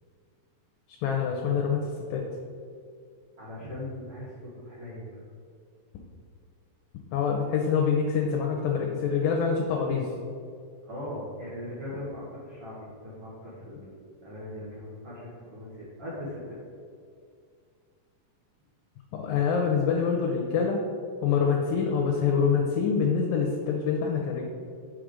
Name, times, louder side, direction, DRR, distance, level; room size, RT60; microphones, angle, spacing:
voice 1, 0.9-2.2 7.1-10.1 19.1-20.8 21.2-24.4, left 6 dB, 80° left, 0 dB, 2.3 m, -25 dB
voice 2, 3.4-5.1 10.8-16.6, left 1 dB, 50° right, -9 dB, 2.1 m, -39 dB
5.9 x 4.9 x 4.9 m, 2.3 s
omnidirectional pair, 4.1 m